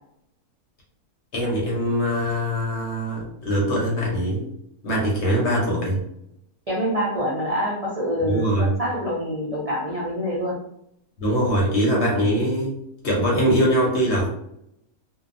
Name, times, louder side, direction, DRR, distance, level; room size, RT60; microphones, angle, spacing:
voice 1, 1.3-4.4 4.8-6.0 8.2-8.7 11.2-12.8 13.0-14.3, equal, 55° left, -3 dB, 0.9 m, -22 dB
voice 2, 6.7-10.6, equal, 60° right, -6 dB, 0.3 m, -26 dB
2.7 x 2.2 x 2.5 m, 0.76 s
omnidirectional pair, 1.6 m